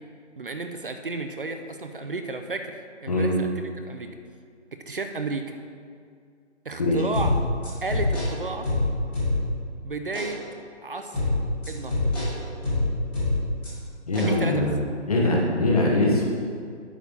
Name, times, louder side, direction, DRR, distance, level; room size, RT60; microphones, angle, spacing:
voice 1, 0.4-4.1 4.9-5.6 6.6-7.3 7.8-8.7 9.8-10.4 10.8-11.2 11.7-12.1 14.1-14.7, right 3 dB, 50° right, 6 dB, 0.6 m, -33 dB
sound 1, 7.1-9.7 10.1-10.3 11.1-13.7 14.1-14.3, left 2 dB, 5° left, 1.5 m, -25 dB
voice 2, 14.1-14.7 15.1-16.3, left 2 dB, 30° left, -2 dB, 1.2 m, -22 dB
8.8 x 4.6 x 6.9 m, 2.3 s
hypercardioid pair, 175°, 36 cm